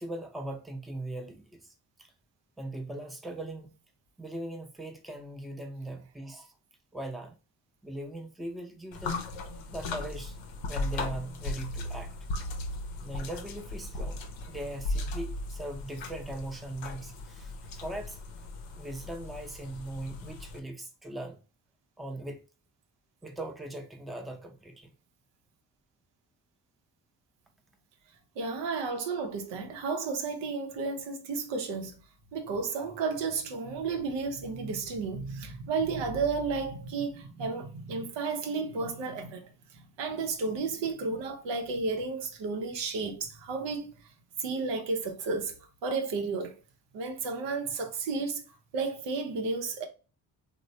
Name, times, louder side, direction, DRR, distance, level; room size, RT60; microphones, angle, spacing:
voice 1, 0.0-1.7 2.0-2.1 2.6-3.8 4.2-6.5 6.9-7.4 7.8-9.2 9.7-10.4 10.7-12.2 13.0-14.2 14.5-18.2 18.8-21.4 22.0-22.4 23.2-24.9, right 1 dB, ahead, 0.6 m, -40 dB
sound 1, 8.9-20.6, left 2 dB, 85° left, 0.6 m, -37 dB
voice 2, 28.4-31.9 32.3-39.4 39.7-43.9 44.4-45.6 45.8-46.6 46.9-48.4 48.7-49.9, right 4 dB, 75° right, 0.7 m, -32 dB
3.0 x 2.1 x 2.6 m
supercardioid pair, 45°, 44 cm